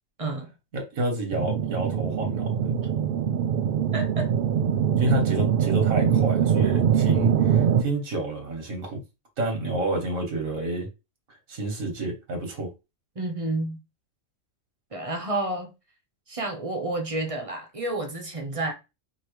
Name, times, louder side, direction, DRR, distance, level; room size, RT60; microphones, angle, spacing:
voice 1, 0.2-0.5 3.9-4.3 13.1-13.8 14.9-15.7 16.3-18.7, right 2 dB, 30° right, 0.9 m, -30 dB
voice 2, 0.7-2.8 5.0-9.0 9.4-10.9 11.3-12.7, right 1 dB, 85° right, 1.7 m, -29 dB
sound 1, 1.3-7.8, right 8 dB, 65° right, 0.5 m, -23 dB
5.2 x 2.9 x 3.1 m
omnidirectional pair, 1.4 m